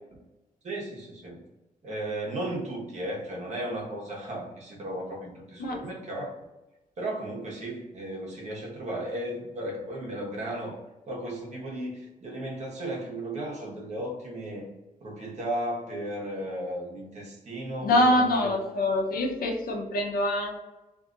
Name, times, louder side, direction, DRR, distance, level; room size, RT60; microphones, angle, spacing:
voice 1, 0.6-1.4 1.8-6.3 7.0-10.7 11.1-14.7 15.0-18.5, right 1 dB, 50° right, -3 dB, 1.1 m, -35 dB
voice 2, 17.8-20.6, left 1 dB, 90° left, 1 dB, 0.7 m, -25 dB
2.7 x 2.5 x 3.8 m, 1.0 s
wide cardioid pair, 145°, 15 cm